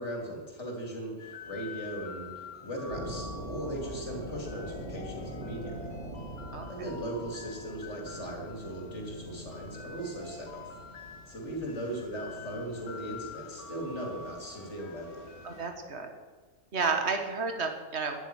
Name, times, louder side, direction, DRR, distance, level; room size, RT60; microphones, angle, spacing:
voice 1, 0.0-5.9 6.7-10.7 11.0-15.2, right 1 dB, 50° left, -1 dB, 3.4 m, -38 dB
sound 1, 1.2-15.7, left 4 dB, 85° left, 2.0 m, -47 dB
sound 2, 2.9-12.8, equal, 30° left, 3.3 m, -43 dB
voice 2, 15.4-16.1 16.7-18.1, right 4 dB, 50° right, 5 dB, 1.8 m, -31 dB
11.0 x 9.2 x 9.4 m, 1.4 s
omnidirectional pair, 1.5 m